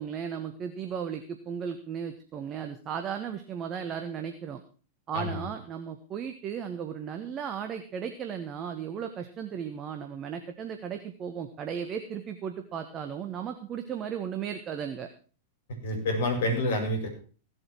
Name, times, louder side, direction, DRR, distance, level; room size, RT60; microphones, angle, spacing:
voice 1, 0.0-4.6 5.1-15.1, right 7 dB, 30° right, 6 dB, 1.5 m, -35 dB
voice 2, 15.7-17.1, left 1 dB, 60° left, 4 dB, 5.3 m, -28 dB
16.5 x 8.1 x 6.0 m, 0.40 s
figure-of-eight pair, 95°, 0 cm